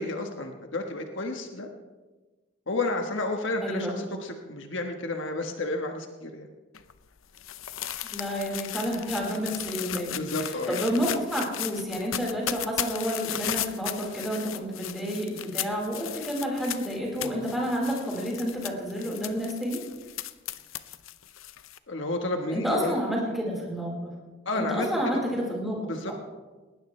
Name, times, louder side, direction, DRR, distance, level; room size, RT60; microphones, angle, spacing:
voice 1, 0.0-1.7 2.7-6.5 10.1-10.9 17.2-17.4 21.9-22.9 24.4-25.2 25.8-26.1, left 2 dB, 70° left, 4 dB, 1.4 m, -31 dB
sound 1, 6.7-21.8, left 12 dB, 85° left, 0.7 m, -36 dB
voice 2, 8.0-19.8 22.5-24.1 24.5-26.1, equal, ahead, -4 dB, 4.5 m, -30 dB
19.5 x 18.5 x 3.3 m, 1.3 s
head